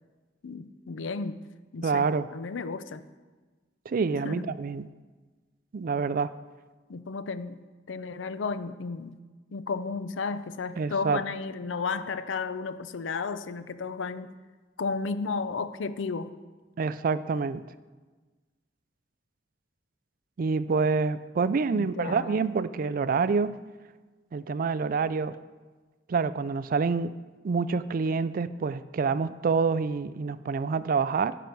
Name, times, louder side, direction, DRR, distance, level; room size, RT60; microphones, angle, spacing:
voice 1, 0.4-1.4 1.7-3.0 4.2-4.4 6.9-7.6 7.9-9.2 9.5-14.3 14.8-16.3 21.7-22.4, left 4 dB, 90° left, 13 dB, 0.5 m, -33 dB
voice 2, 1.8-2.3 3.9-4.9 5.7-6.3 10.8-11.2 16.8-17.6 20.4-23.6 24.3-25.4 26.1-27.2 27.4-31.4, right 5 dB, 50° right, 15 dB, 0.4 m, -27 dB
15.5 x 5.9 x 4.6 m, 1.3 s
head